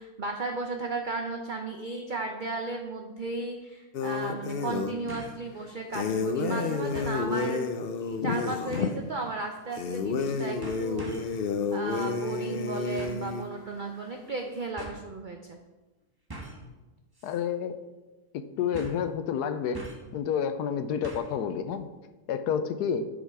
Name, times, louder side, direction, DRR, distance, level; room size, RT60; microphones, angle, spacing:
voice 1, 0.0-7.6 8.0-15.6, right 3 dB, 50° right, 3 dB, 0.6 m, -35 dB
sound 1, 3.2-3.3 5.1-5.4 5.9-6.0 6.9-7.2 8.7-9.1 10.0-10.3 10.6-11.4 13.0-13.3 14.3-14.4 14.8-15.0 16.3-16.7 17.1-17.4 17.7-17.8 18.7-19.1 19.7-20.1 21.0-21.4 21.7-21.8, right 1 dB, 15° right, 1.2 m, -43 dB
sound 2, 3.9-5.0 5.9-8.9 9.7-13.4, left 4 dB, 60° left, 0.6 m, -30 dB
voice 2, 17.2-17.7 18.3-19.8 20.1-21.9 22.3-23.1, left 7 dB, 90° left, 10 dB, 1.2 m, -29 dB
9.9 x 5.6 x 4.8 m, 1.1 s
omnidirectional pair, 1.7 m